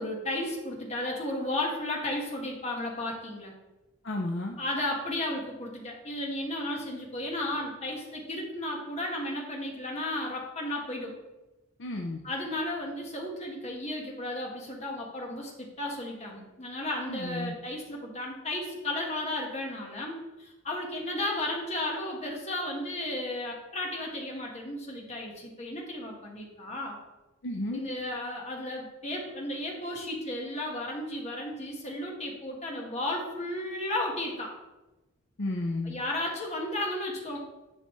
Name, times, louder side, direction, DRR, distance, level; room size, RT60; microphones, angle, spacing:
voice 1, 0.0-3.5 4.6-11.1 12.2-27.0 27.7-34.5 35.8-37.4, left 1 dB, 35° left, -1 dB, 1.5 m, -34 dB
voice 2, 4.0-4.6 11.8-12.2 17.1-17.5 27.4-27.8 35.4-35.9, left 1 dB, 60° left, 2 dB, 0.6 m, -32 dB
10.5 x 5.6 x 3.2 m, 1.0 s
head